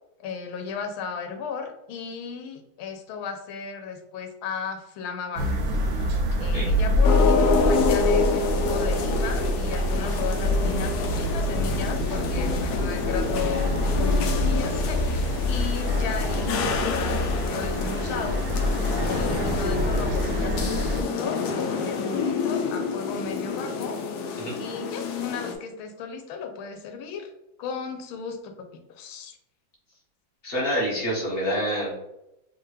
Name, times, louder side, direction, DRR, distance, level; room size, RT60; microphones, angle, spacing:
voice 1, 0.2-5.6 6.4-13.7 14.0-18.5 19.0-24.0 24.6-27.3 27.6-29.4, left 6 dB, 85° left, 5 dB, 1.5 m, -35 dB
sound 1, 5.4-21.0, left 1 dB, 65° right, 0.9 m, -26 dB
sound 2, 7.0-25.5, left 4 dB, 70° left, 1.0 m, -28 dB
voice 2, 30.4-32.0, equal, 35° left, -5 dB, 1.3 m, -27 dB
3.7 x 2.8 x 3.2 m, 0.86 s
omnidirectional pair, 2.2 m